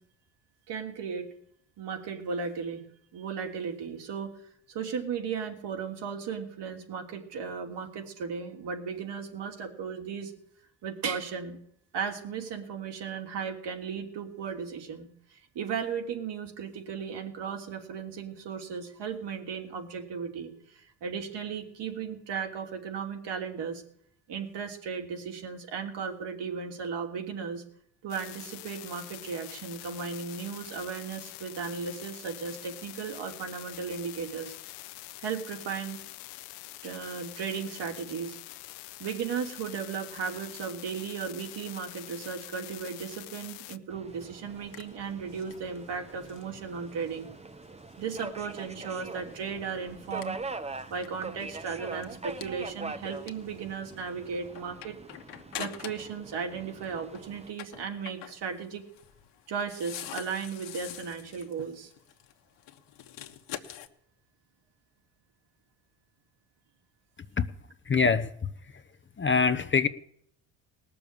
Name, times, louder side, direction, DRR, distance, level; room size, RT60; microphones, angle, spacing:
voice 1, 0.7-1.3 1.8-2.8 3.1-4.3 4.7-10.3 10.8-11.6 11.9-23.8 24.3-27.6 28.0-34.5 35.2-36.0 36.8-38.4 39.0-47.3 48.0-50.4 50.9-55.0 55.6-58.8 59.5-61.9, right 6 dB, 65° right, 3 dB, 3.0 m, -36 dB
sound 1, 28.1-43.8, left 18 dB, 85° left, 0.8 m, -45 dB
Subway metro underground, 43.9-57.5, right 3 dB, 15° right, 0.9 m, -43 dB
sound 2, 44.1-56.2 56.5-63.9, left 11 dB, 65° left, 1.5 m, -47 dB
voice 2, 67.8-68.8 69.2-69.9, left 5 dB, 25° left, 11 dB, 0.9 m, -25 dB
19.0 x 7.0 x 8.6 m, 0.69 s
supercardioid pair, 65°, 45 cm